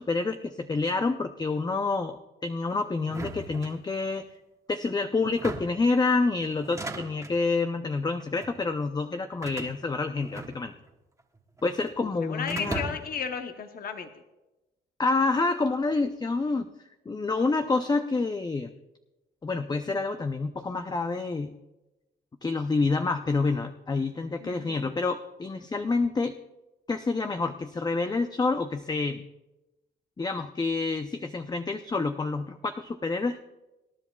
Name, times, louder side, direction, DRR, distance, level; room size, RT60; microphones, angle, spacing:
voice 1, 0.0-4.2 4.7-10.7 11.6-12.8 15.0-16.7 17.1-18.7 19.4-21.5 22.4-26.3 26.9-29.3 30.2-33.4, left 3 dB, 20° left, 7 dB, 0.5 m, -28 dB
sound 1, 3.1-4.2 5.2-5.9 6.6-7.4 8.2-8.6 9.4-10.9 11.2-12.0 12.5-13.2, right 2 dB, 15° right, 1.5 m, -38 dB
voice 2, 12.0-14.2 24.4-24.9, left 6 dB, 45° left, 7 dB, 0.9 m, -35 dB
25.5 x 10.5 x 2.3 m, 1.0 s
cardioid pair, 90°, 20 cm